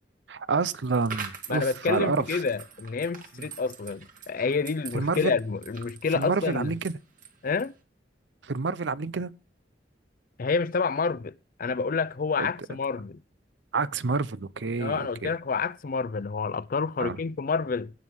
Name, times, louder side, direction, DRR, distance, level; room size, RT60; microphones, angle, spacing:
voice 1, 0.3-2.4 4.9-5.4 6.1-6.9 8.4-9.3 12.4-12.5 13.7-15.3 17.0-17.2, right 4 dB, 80° right, 0.7 m, -28 dB
sound 1, 0.8-7.8, right 6 dB, 50° right, 1.9 m, -44 dB
voice 2, 1.5-6.7 7.4-7.7 10.4-11.3 11.6-13.2 14.8-17.9, left 4 dB, 50° left, 0.5 m, -28 dB
18.0 x 6.3 x 3.6 m
head